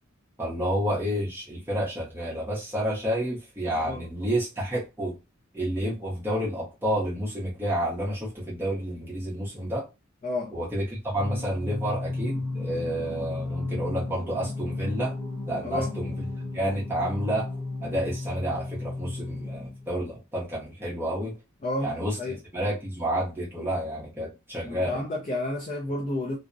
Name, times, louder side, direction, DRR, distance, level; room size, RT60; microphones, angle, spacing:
voice 1, 0.4-5.1 5.5-9.9 10.5-15.1 15.5-16.1 16.5-17.5 17.8-21.4 21.8-22.2 22.5-25.0, equal, 10° right, 0.6 m, -30 dB
voice 2, 10.2-10.5 15.6-16.0 21.6-21.9 22.2-22.4 24.6-26.4, left 2 dB, 35° left, 0.4 m, -30 dB
Singing, 11.1-20.0, left 2 dB, 65° left, 0.7 m, -34 dB
2.5 x 2.1 x 2.5 m
head